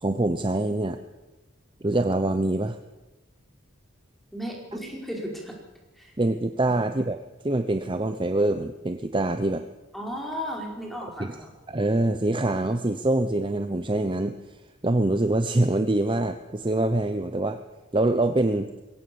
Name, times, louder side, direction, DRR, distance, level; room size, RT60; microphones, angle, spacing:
voice 1, 0.0-1.0 1.8-2.8 6.2-7.2 7.4-9.7 11.2-11.3 11.7-17.6 17.9-18.7, right 2 dB, 25° right, 8 dB, 0.8 m, -25 dB
voice 2, 4.3-5.6 5.9-6.1 6.7-6.8 9.9-11.5, equal, ahead, -1 dB, 4.8 m, -35 dB
22.0 x 17.0 x 7.0 m, 1.1 s
head